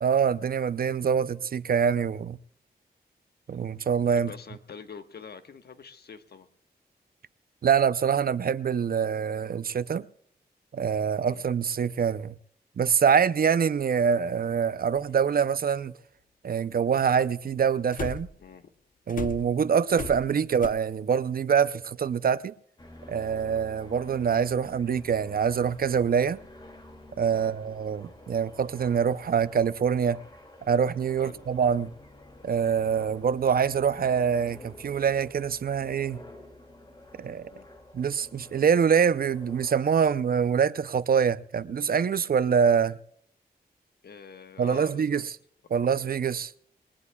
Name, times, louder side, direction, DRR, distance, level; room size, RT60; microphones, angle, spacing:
voice 1, 0.0-2.4 3.5-4.3 7.6-10.1 10.7-12.3 12.8-15.9 16.4-18.3 19.1-22.5 23.1-26.4 27.2-30.2 30.7-31.9 32.4-36.2 37.2-37.5 37.9-43.0 44.6-45.2 45.7-46.5, right 7 dB, 60° right, 0.6 m, -25 dB
voice 2, 4.1-6.5 11.3-11.4 18.4-18.7 27.3-27.5 31.2-31.4 37.5-37.7 44.0-45.3, left 6 dB, 75° left, 1.3 m, -45 dB
sound 1, 15.0-15.1 17.9-18.5 19.1-20.7, left 5 dB, 55° left, 0.8 m, -36 dB
sound 2, 22.8-39.9, left 1 dB, 25° left, 2.4 m, -49 dB
21.5 x 19.5 x 2.3 m
cardioid pair, 75°, 17 cm